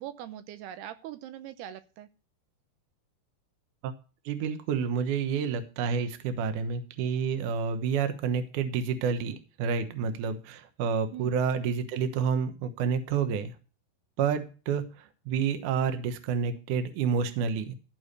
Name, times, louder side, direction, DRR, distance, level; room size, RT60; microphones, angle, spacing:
voice 1, 0.0-2.1 11.1-11.3, right 11 dB, 80° right, 10 dB, 2.8 m, -41 dB
voice 2, 4.3-13.5 14.2-14.8 15.3-17.8, right 6 dB, 65° right, 9 dB, 2.1 m, -29 dB
14.5 x 4.8 x 6.7 m, 0.35 s
omnidirectional pair, 4.6 m